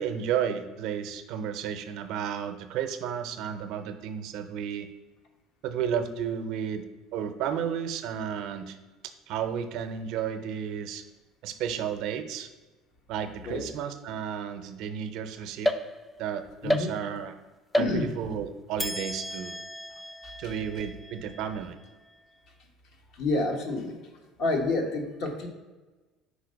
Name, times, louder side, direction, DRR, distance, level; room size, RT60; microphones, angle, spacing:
voice 1, 0.0-4.9 5.6-6.8 7.1-8.8 9.0-11.0 11.4-12.5 13.1-15.7 16.2-17.3 17.7-19.6 20.4-21.8, right 8 dB, 70° right, 9 dB, 0.6 m, -32 dB
sound 1, 15.6-16.3 16.7-17.3 17.7-18.4 18.8-22.2, equal, 5° left, 0.4 m, -33 dB
voice 2, 17.8-18.1 20.2-20.5 23.1-24.0 24.4-25.5, left 2 dB, 60° left, 3 dB, 1.2 m, -29 dB
5.0 x 4.3 x 5.1 m, 1.2 s
cardioid pair, 115°, 0 cm